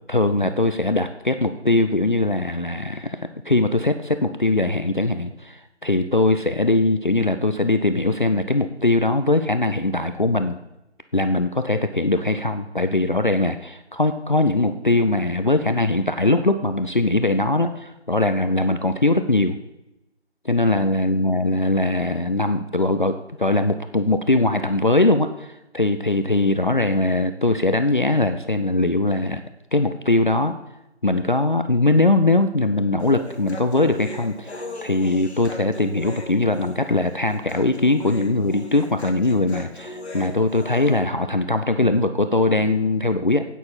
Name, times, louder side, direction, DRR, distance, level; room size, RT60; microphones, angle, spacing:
voice 1, 0.1-3.2 3.5-10.6 11.1-19.5 20.4-29.4 29.7-30.5 31.0-43.5, left 2 dB, 45° left, 8 dB, 0.5 m, -21 dB
Human voice, 33.0-41.0, left 1 dB, 65° left, 1.8 m, -38 dB
9.1 x 8.8 x 4.2 m, 0.92 s
figure-of-eight pair, 165°, 34 cm